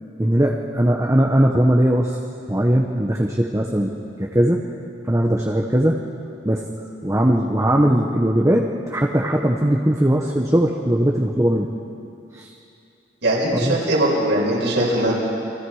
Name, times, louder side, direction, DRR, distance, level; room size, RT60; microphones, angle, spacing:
voice 1, 0.2-2.2 2.5-4.6 5.1-6.0 6.4-6.7 7.0-11.7 12.3-12.5 13.6-13.8, right 1 dB, 15° right, 0 dB, 1.0 m, -19 dB
voice 2, 13.2-15.1, right 1 dB, 75° right, -6 dB, 5.9 m, -20 dB
29.5 x 22.5 x 4.9 m, 2.6 s
head